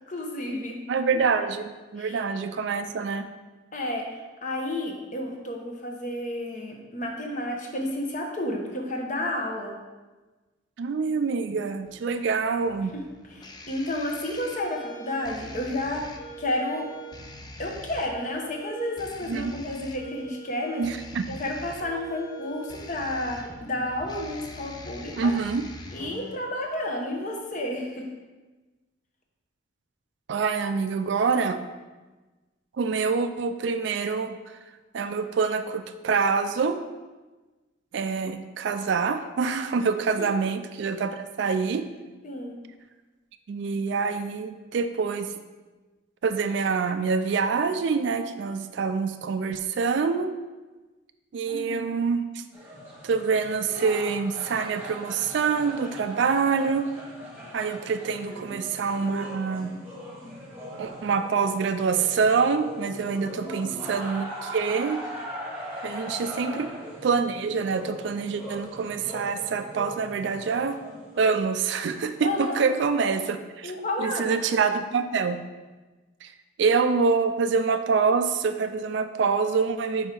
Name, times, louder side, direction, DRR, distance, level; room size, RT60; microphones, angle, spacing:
voice 1, 0.1-0.8 2.0-2.2 3.7-4.1 4.4-9.7 12.9-13.0 13.3-16.9 17.6-20.9 21.3-25.3 25.9-28.1 40.2-40.3 42.2-42.6 51.4-51.9 58.5-58.6 63.4-63.9 66.4-66.6 72.2-72.7 73.6-74.4, left 1 dB, 40° left, 1 dB, 0.8 m, -31 dB
voice 2, 0.9-3.3 10.8-12.9 19.3-19.5 20.8-21.3 25.2-25.6 30.3-31.6 32.8-34.4 34.9-36.8 37.9-41.8 43.5-45.3 46.2-50.3 51.3-52.4 53.0-56.9 57.5-59.7 60.8-65.0 65.8-66.7 67.0-70.8 71.2-73.7 74.0-75.4 76.2-76.3 76.6-80.1, right 5 dB, 60° right, 9 dB, 0.3 m, -26 dB
sound 1, 11.9-26.4, right 1 dB, 20° left, 0.4 m, -43 dB
sound 2, 52.5-71.4, equal, 10° right, 1.2 m, -40 dB
5.4 x 4.8 x 4.3 m, 1.2 s
head